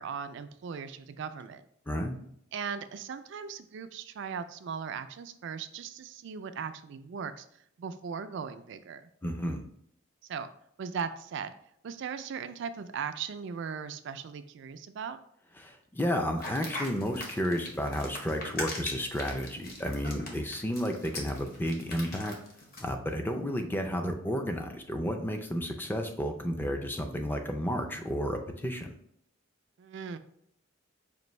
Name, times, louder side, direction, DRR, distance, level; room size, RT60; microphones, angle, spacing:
voice 1, 0.0-1.6 2.5-7.5 7.8-9.1 10.3-10.5 10.8-11.5 11.8-15.2 29.8-30.2, right 6 dB, 60° right, 10 dB, 0.3 m, -38 dB
voice 2, 1.9-2.2 9.2-9.6 15.6-22.4 22.8-28.9, equal, 10° left, 5 dB, 0.4 m, -32 dB
sticky textures (alien new born), 16.4-22.9, left 2 dB, 50° left, 0.9 m, -40 dB
5.2 x 2.6 x 3.1 m, 0.71 s
head